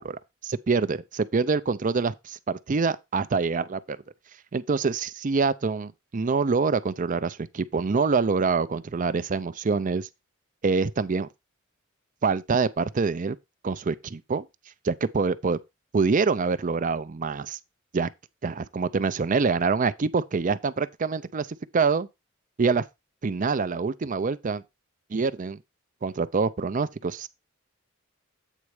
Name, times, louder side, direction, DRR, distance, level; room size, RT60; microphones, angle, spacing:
voice 1, 0.0-4.0 4.5-10.1 10.6-11.3 12.2-13.4 13.6-14.4 14.8-15.6 15.9-17.6 17.9-18.1 18.4-21.5 21.7-22.1 22.6-22.9 23.2-24.6 25.1-25.6 26.0-27.3, right 4 dB, 40° right, 0.5 m, -25 dB
8.3 x 4.3 x 4.8 m
head